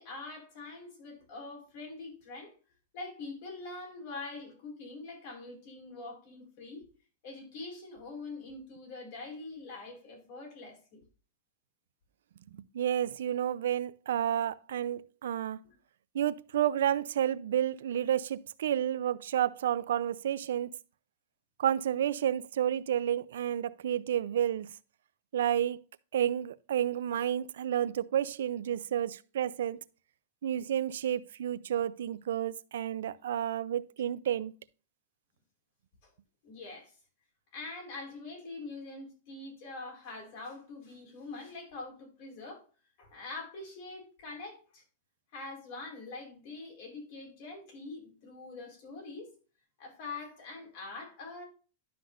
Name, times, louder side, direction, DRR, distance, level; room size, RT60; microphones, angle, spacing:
voice 1, 0.0-2.5 2.9-6.8 7.2-11.0 36.0-36.1 36.4-36.9 37.5-42.6 43.0-44.8 45.3-49.3 49.8-51.4, left 3 dB, 55° left, 4.6 m, -44 dB
voice 2, 12.7-15.6 16.1-20.7 21.6-24.7 25.3-25.8 26.1-29.8 30.4-34.5, right 10 dB, 85° right, 0.5 m, -30 dB
11.5 x 5.9 x 2.5 m
supercardioid pair, 155°, 0 cm